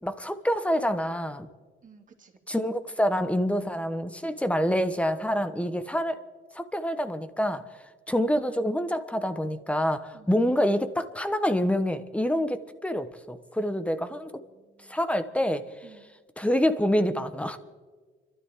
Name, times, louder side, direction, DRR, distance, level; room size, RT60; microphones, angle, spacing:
voice 1, 0.0-1.5 2.5-6.2 6.5-7.7 8.1-14.3 14.9-15.6 16.4-17.6, equal, 5° left, 10 dB, 1.2 m, -26 dB
voice 2, 1.8-2.5 10.1-10.3 14.5-15.0 15.8-16.1, right 5 dB, 40° right, 1 dB, 2.8 m, -55 dB
29.5 x 13.0 x 3.8 m, 1.5 s
cardioid pair, 90°, 20 cm